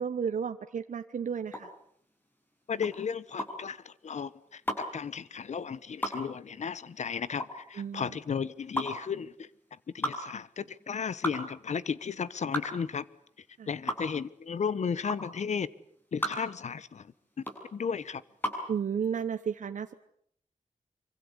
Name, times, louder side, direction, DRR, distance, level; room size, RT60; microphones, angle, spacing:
voice 1, 0.0-1.7 7.8-8.1 13.6-13.7 18.7-19.9, right 7 dB, 70° right, 8 dB, 1.1 m, -33 dB
sound 1, 1.5-18.7, equal, 15° left, 6.7 m, -36 dB
voice 2, 2.7-9.5 9.9-13.1 13.7-15.7 16.1-17.4 17.7-18.2, left 6 dB, 60° left, 18 dB, 1.1 m, -34 dB
26.0 x 24.5 x 8.1 m, 0.67 s
wide cardioid pair, 150°, 13 cm